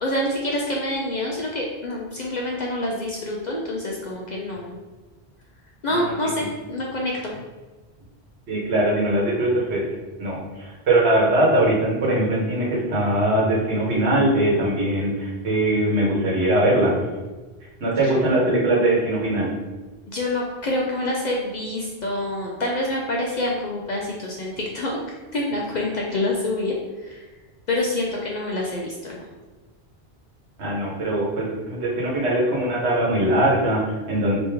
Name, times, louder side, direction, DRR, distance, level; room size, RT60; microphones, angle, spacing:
voice 1, 0.0-4.7 5.8-7.3 18.0-18.1 20.1-25.0 25.3-27.2 27.7-29.3, left 1 dB, 55° left, -2 dB, 0.5 m, -27 dB
voice 2, 8.5-9.8 10.2-16.9 17.8-19.5 30.6-34.4, right 1 dB, 75° right, -3 dB, 1.3 m, -21 dB
3.1 x 2.9 x 3.4 m, 1.2 s
omnidirectional pair, 1.1 m